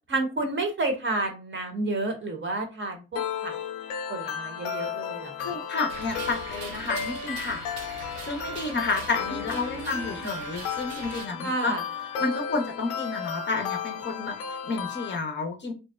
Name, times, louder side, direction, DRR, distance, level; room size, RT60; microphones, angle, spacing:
voice 1, 0.1-3.5 4.1-5.6 9.3-10.3 11.4-11.8, right 2 dB, 35° right, 4 dB, 0.8 m, -31 dB
sound 1, 3.2-15.2, left 7 dB, 75° left, 0.5 m, -34 dB
voice 2, 5.4-7.6 8.3-11.7 12.2-15.7, left 3 dB, 30° left, 3 dB, 0.6 m, -30 dB
sound 2, 5.9-11.3, right 5 dB, 75° right, 0.6 m, -41 dB
2.7 x 2.0 x 2.2 m, 0.30 s
hypercardioid pair, 45°, 36 cm